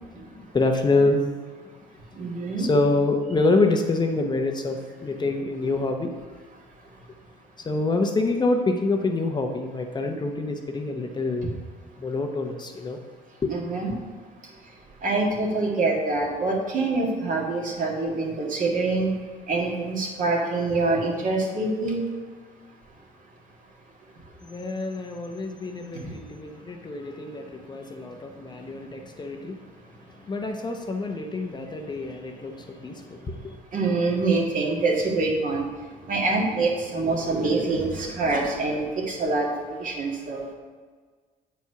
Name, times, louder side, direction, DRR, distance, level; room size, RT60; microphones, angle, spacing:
voice 1, 0.3-1.3 2.6-6.1 7.6-11.6 12.0-13.0 13.4-13.5 13.9-14.0 24.4-29.6 30.3-33.6, left 3 dB, 25° left, 3 dB, 0.7 m, -26 dB
voice 2, 2.2-2.7 13.5-13.9 15.0-19.1 19.5-22.0 26.0-26.1 33.7-35.7 36.1-40.4, right 3 dB, 50° right, -1 dB, 1.9 m, -25 dB
8.2 x 4.7 x 5.6 m, 1.5 s
cardioid pair, 110°, 17 cm